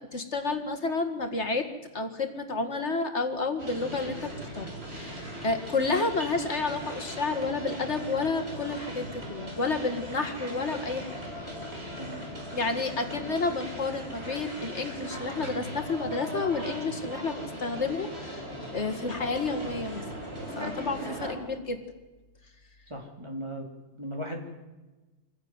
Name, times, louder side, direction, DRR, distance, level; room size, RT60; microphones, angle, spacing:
voice 1, 0.1-1.7 1.9-11.1 12.5-20.0 20.6-21.8, left 3 dB, 65° left, 6 dB, 2.2 m, -30 dB
sound 1, 3.6-21.3, equal, 55° right, 4.9 m, -39 dB
voice 2, 12.0-12.3 13.0-13.1 22.9-23.7 24.0-24.4, equal, 25° right, 1 dB, 3.8 m, -37 dB
25.0 x 16.0 x 9.7 m, 1.1 s
omnidirectional pair, 1.3 m